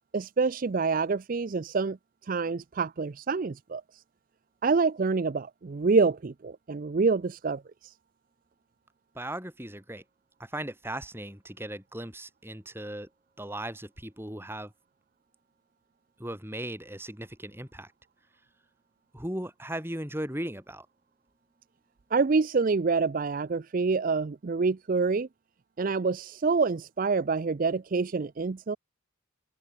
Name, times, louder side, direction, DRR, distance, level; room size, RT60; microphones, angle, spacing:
voice 1, 0.1-2.0 2.2-4.0 4.6-7.9 22.1-25.3 25.8-28.8, right 4 dB, 40° right, 0.4 m, -27 dB
voice 2, 9.1-10.0 10.4-13.1 13.4-14.7 16.2-17.9 19.1-20.9, right 1 dB, 10° right, 6.4 m, -37 dB
head